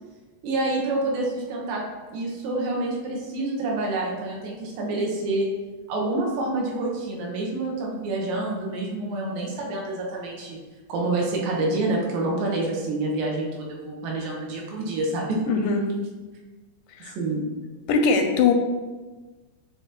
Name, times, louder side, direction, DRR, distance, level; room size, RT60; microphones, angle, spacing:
voice 1, 0.4-1.8 2.1-5.5 5.9-10.6 10.9-15.4 17.2-17.4, right 2 dB, 90° right, -2 dB, 2.8 m, -27 dB
voice 2, 15.5-15.8 17.0-17.1 17.9-18.5, left 5 dB, 85° left, 4 dB, 2.2 m, -20 dB
9.6 x 3.4 x 2.9 m, 1.3 s
omnidirectional pair, 3.9 m